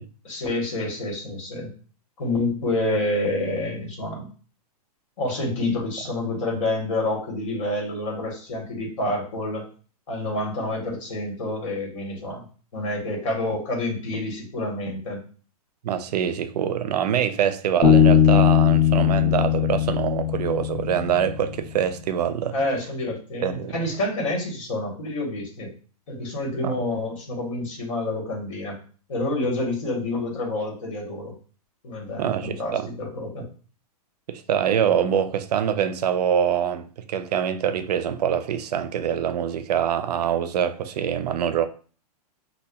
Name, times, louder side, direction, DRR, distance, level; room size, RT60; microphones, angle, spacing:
voice 1, 0.2-1.7 2.2-4.3 5.2-9.7 10.1-12.4 12.7-15.2 22.5-25.7 26.1-28.8 29.1-31.3 31.8-33.4, left 2 dB, 55° left, 1.4 m, -28 dB
voice 2, 15.8-22.5 23.4-23.8 26.6-26.8 32.2-32.9 34.3-41.6, right 9 dB, 85° right, 0.5 m, -24 dB
Bass guitar, 17.8-21.3, left 9 dB, 20° left, 0.6 m, -19 dB
5.4 x 2.2 x 2.3 m
supercardioid pair, 175°, 20 cm